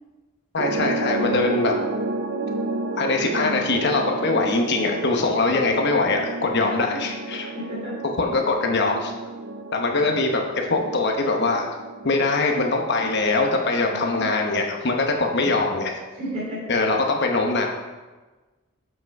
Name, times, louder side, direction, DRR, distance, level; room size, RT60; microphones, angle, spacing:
voice 1, 0.5-1.8 2.9-7.5 8.2-9.1 9.7-10.4 10.7-11.7 12.0-15.9 16.7-17.7, left 3 dB, 55° left, 2 dB, 0.9 m, -22 dB
sound 1, 0.6-14.6, right 2 dB, 65° right, 0.6 m, -31 dB
voice 2, 6.6-7.0 7.4-8.0 13.9-14.3 15.2-15.6 16.1-16.8, equal, 30° right, -9 dB, 3.0 m, -34 dB
7.8 x 5.8 x 4.7 m, 1.2 s
head